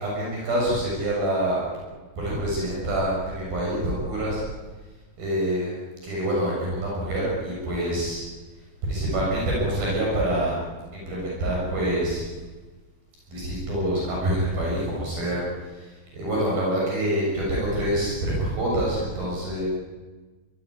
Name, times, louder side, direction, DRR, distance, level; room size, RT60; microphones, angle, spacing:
voice 1, 0.0-1.6 2.2-4.5 5.2-5.7 6.0-8.2 8.8-10.6 10.9-12.2 13.3-15.5 15.7-19.7, right 1 dB, 60° right, -4 dB, 9.0 m, -26 dB
24.5 x 19.5 x 9.9 m, 1.3 s
omnidirectional pair, 4.9 m